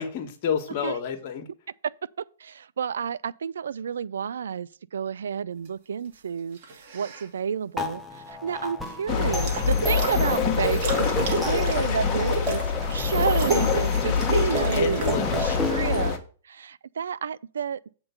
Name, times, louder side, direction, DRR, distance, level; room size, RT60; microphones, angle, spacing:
voice 1, 0.0-1.5 11.7-12.0 14.7-15.7 15.9-16.1, left 7 dB, 45° left, 1.4 m, -30 dB
voice 2, 2.4-12.6 12.9-16.2 16.5-17.8, right 7 dB, 85° right, 0.3 m, -30 dB
sound 1, 6.6-7.3 9.2-10.2 10.5-15.2, right 3 dB, 55° right, 2.1 m, -31 dB
sound 2, 7.8-16.1, left 2 dB, ahead, 0.9 m, -33 dB
sound 3, 9.1-16.2, left 6 dB, 25° left, 1.4 m, -25 dB
7.8 x 3.8 x 6.7 m
hypercardioid pair, 135°, 0 cm